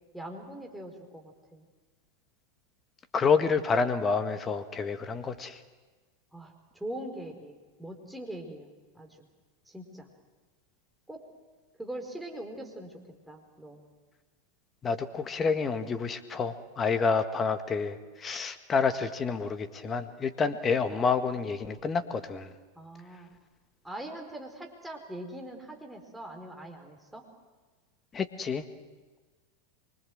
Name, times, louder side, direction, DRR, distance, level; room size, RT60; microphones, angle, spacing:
voice 1, 0.1-1.6 6.3-8.7 8.9-9.3 9.7-10.1 11.1-11.2 11.8-13.8 22.7-23.3 23.8-27.2, right 1 dB, 5° right, 2 dB, 4.6 m, -42 dB
voice 2, 3.1-5.6 14.8-22.5 28.1-28.6, left 5 dB, 25° left, 10 dB, 1.8 m, -28 dB
25.5 x 24.0 x 7.8 m, 1.3 s
figure-of-eight pair, 90°, 0 cm